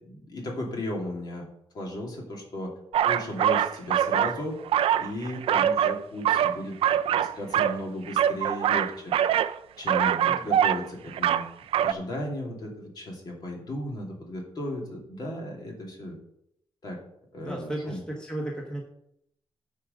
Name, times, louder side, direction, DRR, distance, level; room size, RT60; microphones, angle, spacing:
voice 1, 0.0-1.5 1.7-2.7 3.0-4.5 5.0-11.4 11.7-16.2 16.8-17.0 17.3-18.0, left 1 dB, 45° left, 0 dB, 2.6 m, -35 dB
sound 1, 2.9-4.4 4.6-6.0 6.2-7.8 8.1-9.5 9.9-10.8 11.1-11.5 11.7-11.9, right 10 dB, 90° right, 0.4 m, -23 dB
voice 2, 10.2-10.6 17.4-18.8, right 1 dB, 10° left, -1 dB, 1.4 m, -34 dB
9.7 x 5.0 x 6.5 m, 0.77 s
wide cardioid pair, 160°, 9 cm